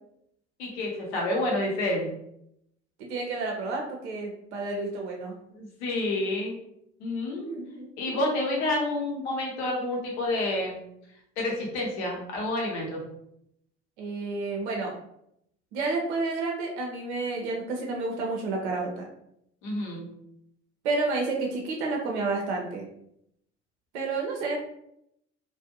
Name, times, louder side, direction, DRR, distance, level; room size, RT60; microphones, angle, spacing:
voice 1, 0.6-2.1 5.5-6.6 7.0-7.5 8.0-10.8 11.4-13.0 19.6-20.0, left 1 dB, 70° left, -1 dB, 0.8 m, -29 dB
voice 2, 3.0-5.3 7.4-8.2 14.0-14.9 15.7-19.0 20.8-22.9 23.9-24.7, right 3 dB, 70° right, 0 dB, 0.5 m, -30 dB
2.4 x 2.1 x 2.6 m, 0.75 s
figure-of-eight pair, 50°, 35 cm